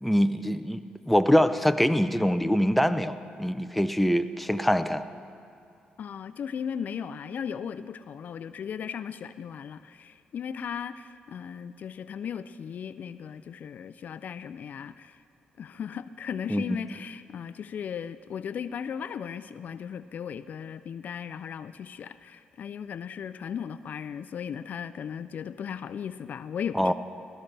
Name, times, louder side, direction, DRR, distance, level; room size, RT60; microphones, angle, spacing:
voice 1, 0.0-5.0 16.5-16.8 26.7-26.9, equal, ahead, 10 dB, 0.5 m, -24 dB
voice 2, 6.0-15.2 15.6-26.9, left 7 dB, 60° left, 13 dB, 0.4 m, -36 dB
16.5 x 14.0 x 3.3 m, 2.7 s
cardioid pair, 75°, 3 cm